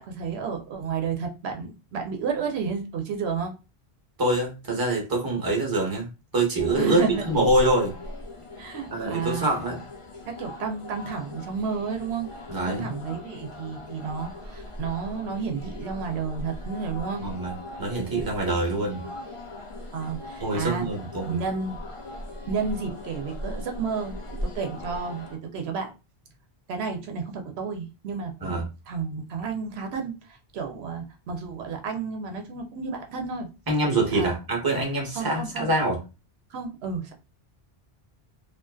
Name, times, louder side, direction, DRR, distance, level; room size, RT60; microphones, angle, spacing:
voice 1, 0.0-3.5 6.8-7.2 8.6-9.5 10.3-12.3 12.6-17.2 19.9-20.9 21.3-21.8 22.5-25.9 26.7-28.6 28.9-33.5 34.1-34.4 35.1-35.7 36.5-37.1, right 5 dB, 85° right, 4 dB, 0.9 m, -31 dB
voice 2, 4.2-8.0 8.9-9.8 12.5-12.9 17.2-19.0 20.4-21.4 28.4-28.6 33.7-36.0, right 2 dB, 25° right, 0 dB, 0.8 m, -25 dB
sound 1, 6.6-25.4, left 1 dB, 40° left, 0.5 m, -39 dB
2.5 x 2.4 x 2.3 m, 0.28 s
omnidirectional pair, 1.0 m